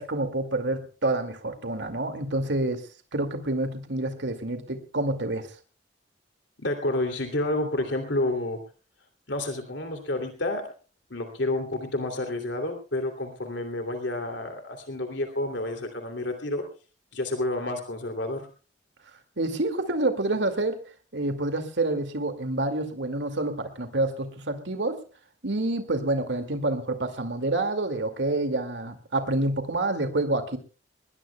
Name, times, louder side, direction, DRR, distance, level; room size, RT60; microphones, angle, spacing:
voice 1, 0.0-2.9 3.1-5.5 19.4-20.9 21.1-25.0 25.4-30.6, right 2 dB, 80° right, 7 dB, 2.2 m, -28 dB
voice 2, 6.6-8.6 9.3-10.7 11.1-16.6 17.1-18.5, left 2 dB, 80° left, 4 dB, 2.8 m, -29 dB
21.0 x 20.5 x 2.3 m, 0.37 s
head